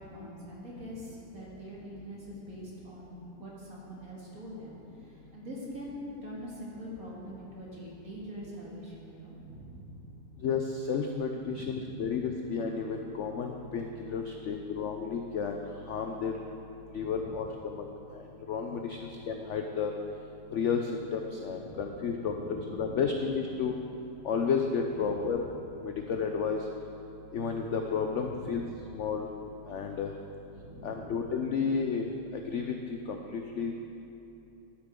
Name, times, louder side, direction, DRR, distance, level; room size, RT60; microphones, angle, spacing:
voice 1, 0.0-10.0 11.4-12.0 16.9-17.4 18.7-18.9 21.3-23.1 23.4-23.5 24.9-25.4 28.1-28.5 30.5-31.2, equal, 55° right, -6 dB, 2.5 m, -44 dB
voice 2, 10.4-15.6 15.9-16.4 16.9-17.9 18.1-19.9 20.5-23.7 24.2-25.5 25.8-26.6 27.3-28.6 28.9-29.3 29.7-30.1 30.8-32.1 32.3-33.7, left 6 dB, 80° left, 3 dB, 0.6 m, -32 dB
11.5 x 9.8 x 3.7 m, 2.9 s
omnidirectional pair, 1.9 m